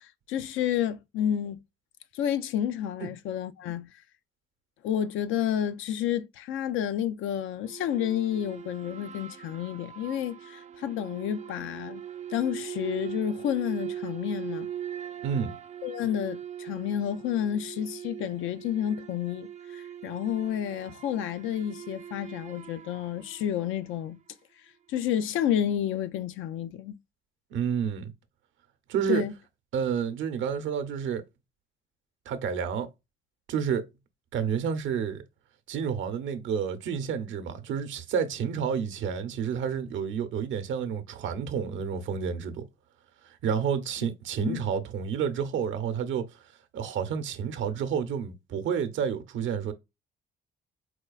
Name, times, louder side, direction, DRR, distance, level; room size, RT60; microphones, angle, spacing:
voice 1, 0.0-1.6 2.1-3.9 4.8-12.0 12.3-14.7 15.8-24.2 24.9-26.9 29.1-29.3 44.4-44.6, left 10 dB, 85° left, 0.4 m, -30 dB
sound 1, 7.6-24.2, right 10 dB, 35° right, 0.4 m, -41 dB
voice 2, 15.2-15.5 27.5-28.1 28.9-29.2 29.7-31.2 32.3-32.9 33.5-33.9 34.3-35.2 35.7-42.6 43.4-46.3 46.7-49.7, right 7 dB, 75° right, 0.7 m, -30 dB
4.3 x 2.4 x 2.2 m
cardioid pair, 90°, 20 cm